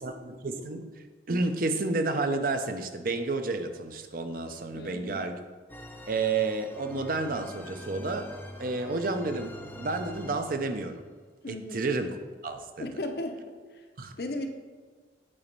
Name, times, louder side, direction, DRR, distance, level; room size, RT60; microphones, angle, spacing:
voice 1, 0.0-0.8 1.3-5.4 6.1-8.3 8.6-11.0 11.5-12.1 12.4-12.9 14.0-14.1, right 3 dB, 50° right, 7 dB, 0.6 m, -30 dB
voice 2, 4.7-5.2 11.4-11.8 12.8-13.4 13.7-13.9 14.2-14.5, left 2 dB, 60° left, 5 dB, 0.7 m, -35 dB
sound 1, 5.7-10.9, equal, 10° left, 0.7 m, -44 dB
8.6 x 4.1 x 5.3 m, 1.5 s
head